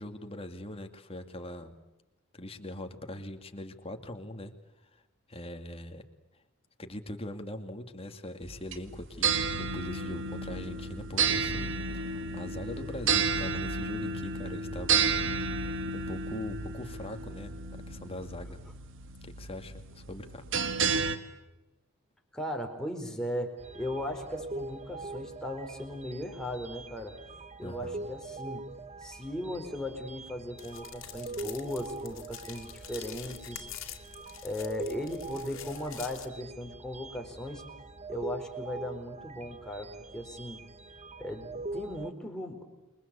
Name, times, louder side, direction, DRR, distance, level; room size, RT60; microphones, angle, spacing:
voice 1, 0.0-1.7 2.3-4.5 4.9-5.0 5.3-6.0 6.8-9.3 9.7-15.1 15.9-17.5 17.9-18.6 19.2-20.4 27.6-28.1, left 1 dB, 25° left, 6 dB, 2.4 m, -41 dB
sound 1, 8.4-21.2, right 5 dB, 60° right, 2.1 m, -31 dB
voice 2, 22.3-27.2 27.6-28.6 29.0-33.7 34.4-37.6 38.1-40.6 41.2-42.6, left 1 dB, 5° left, 2 dB, 4.4 m, -37 dB
sound 2, 23.6-42.1, right 2 dB, 30° right, 1.4 m, -43 dB
sound 3, 30.6-36.3, left 11 dB, 65° left, 2.9 m, -46 dB
29.0 x 23.0 x 8.3 m, 1.0 s
head